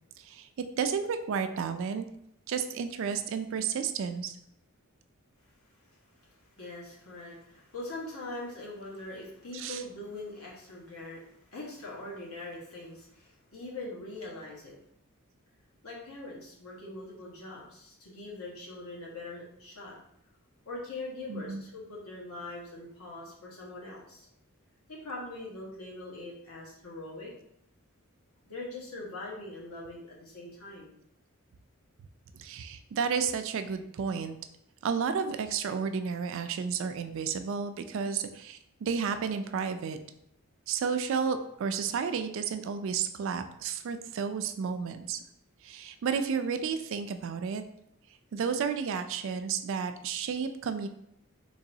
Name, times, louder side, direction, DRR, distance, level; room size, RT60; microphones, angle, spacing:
voice 1, 0.2-2.1 2.5-4.4 9.5-9.8 21.3-21.6 32.3-34.3 34.8-40.0 40.7-45.2 45.6-47.6 48.3-50.9, right 6 dB, 60° right, 9 dB, 0.3 m, -32 dB
voice 2, 5.8-14.8 15.8-19.9 20.6-24.3 24.9-27.3 28.5-30.9, left 2 dB, 85° left, -4 dB, 1.3 m, -42 dB
3.9 x 2.9 x 2.7 m, 0.74 s
head